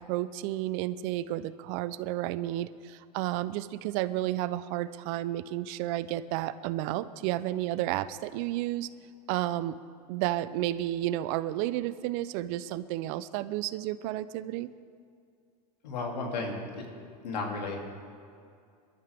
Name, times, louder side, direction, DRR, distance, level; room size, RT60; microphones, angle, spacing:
voice 1, 0.0-8.9 9.3-9.8 10.1-14.7, right 14 dB, 55° right, 15 dB, 0.6 m, -32 dB
voice 2, 15.8-16.8 17.2-17.8, left 3 dB, 90° left, 0 dB, 2.8 m, -34 dB
21.5 x 13.0 x 3.5 m, 2.3 s
supercardioid pair, 120°, 21 cm